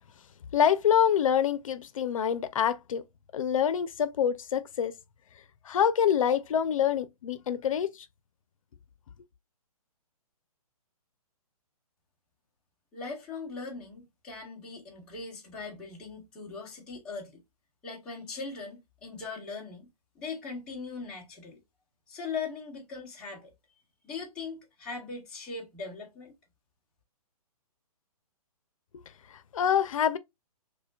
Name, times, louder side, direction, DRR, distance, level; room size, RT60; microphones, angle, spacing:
voice 1, 0.5-3.0 3.3-4.9 5.7-7.9 28.9-29.0 29.5-30.2, left 8 dB, 60° left, 0.5 m, -26 dB
voice 2, 12.9-17.4 17.8-19.9 20.2-21.6 22.1-23.5 24.0-26.3, left 4 dB, 5° left, 0.4 m, -40 dB
4.8 x 2.2 x 2.2 m
hypercardioid pair, 160°, 19 cm